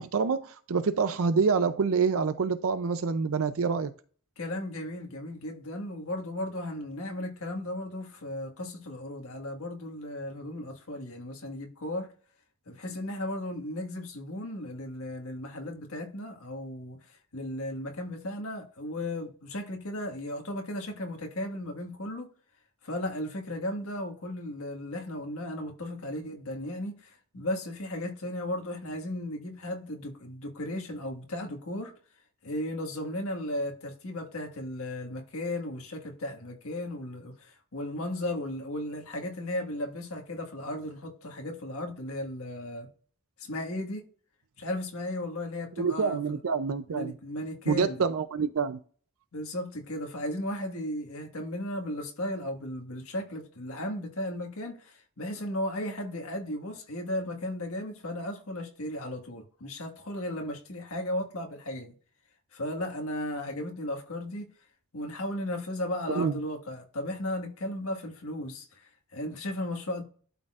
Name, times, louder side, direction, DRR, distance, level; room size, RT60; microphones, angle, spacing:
voice 1, 0.0-3.9 45.8-47.1 47.7-48.8 66.2-66.4, right 5 dB, 70° right, 0.5 m, -27 dB
voice 2, 4.4-12.1 12.7-17.0 17.3-22.3 22.8-31.9 32.4-42.9 43.4-44.0 44.6-46.4 46.9-48.0 49.3-61.9 62.5-64.5 64.9-70.0, left 1 dB, 75° left, 1.7 m, -35 dB
12.0 x 4.3 x 2.4 m
head